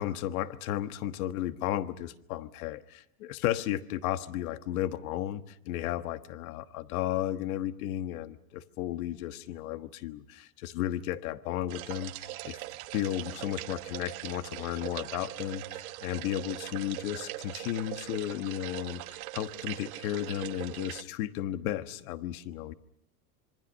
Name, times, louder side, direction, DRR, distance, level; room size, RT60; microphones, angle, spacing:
voice 1, 0.0-12.6 12.9-22.7, left 12 dB, 70° left, 10 dB, 1.4 m, -34 dB
sound 1, 11.7-21.0, right 18 dB, 70° right, 1.3 m, -41 dB
26.5 x 24.0 x 6.3 m, 0.78 s
supercardioid pair, 160°, 44 cm